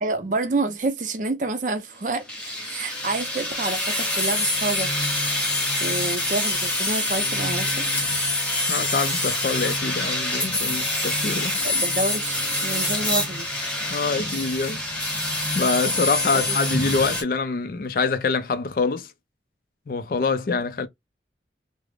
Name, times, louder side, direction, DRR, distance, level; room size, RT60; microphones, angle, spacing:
voice 1, 0.0-2.3 2.6-4.9 5.8-7.9 11.6-13.5 16.3-16.6, right 3 dB, 45° right, 0.5 m, -28 dB
sound 1, 2.3-17.2, left 1 dB, 5° left, 0.8 m, -25 dB
voice 2, 8.7-11.6 13.9-14.8 15.6-19.1 19.9-20.9, left 4 dB, 50° left, 0.3 m, -25 dB
2.3 x 2.0 x 3.2 m
head